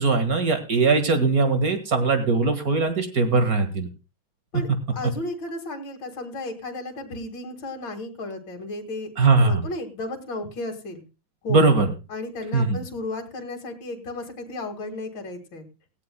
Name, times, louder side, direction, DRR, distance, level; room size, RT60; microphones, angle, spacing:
voice 1, 0.0-3.9 9.2-9.6 11.5-11.9 12.5-12.8, right 3 dB, 50° right, 8 dB, 2.2 m, -20 dB
voice 2, 4.5-9.1 9.4-11.0 11.4-11.7 12.1-15.6, left 2 dB, 70° left, 2 dB, 2.7 m, -34 dB
18.0 x 14.5 x 2.2 m, 0.31 s
omnidirectional pair, 2.1 m